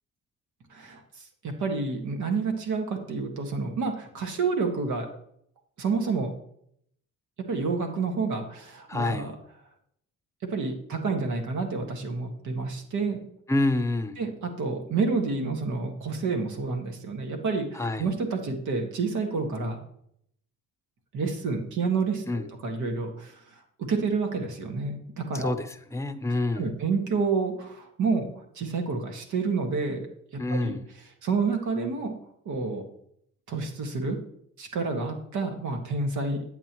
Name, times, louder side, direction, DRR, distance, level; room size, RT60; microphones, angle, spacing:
voice 1, 0.7-5.1 5.8-6.3 7.5-9.3 10.5-13.2 14.2-19.8 21.1-23.4 23.8-25.5 26.5-28.3 28.6-30.8 31.2-32.1 32.5-32.8 33.5-34.2 34.6-36.4, right 4 dB, 75° right, 4 dB, 1.8 m, -29 dB
voice 2, 8.9-9.3 13.5-14.2 17.7-18.1 22.3-22.4 25.3-26.7 30.4-30.8, left 2 dB, 10° left, 8 dB, 0.7 m, -27 dB
8.9 x 8.2 x 3.0 m, 0.70 s
cardioid pair, 90°, 30 cm